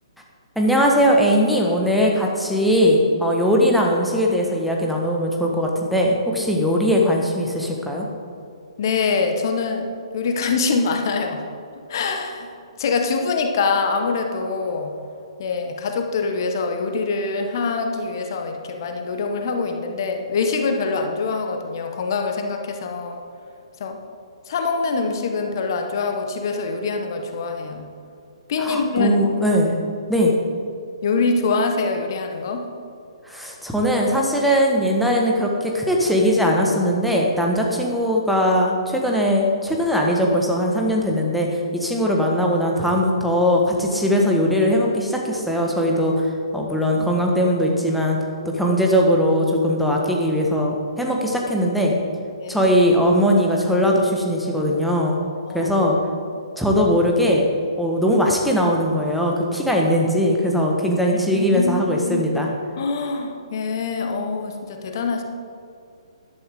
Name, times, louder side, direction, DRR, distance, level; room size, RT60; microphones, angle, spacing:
voice 1, 0.5-8.1 28.6-29.7 30.1-30.3 33.3-46.3 46.5-48.2 48.5-51.9 52.5-55.2 55.5-56.0 56.6-57.5 57.8-62.5, equal, ahead, -2 dB, 1.5 m, -20 dB
voice 2, 8.8-11.4 11.9-12.5 12.8-14.9 15.4-23.2 23.8-24.0 24.5-27.9 28.5-29.2 31.0-32.7 52.4-52.6 55.5-55.7 61.3-62.3 62.8-65.2, left 4 dB, 40° left, 5 dB, 1.4 m, -24 dB
13.5 x 12.0 x 3.8 m, 2.5 s
figure-of-eight pair, 130°, 3 cm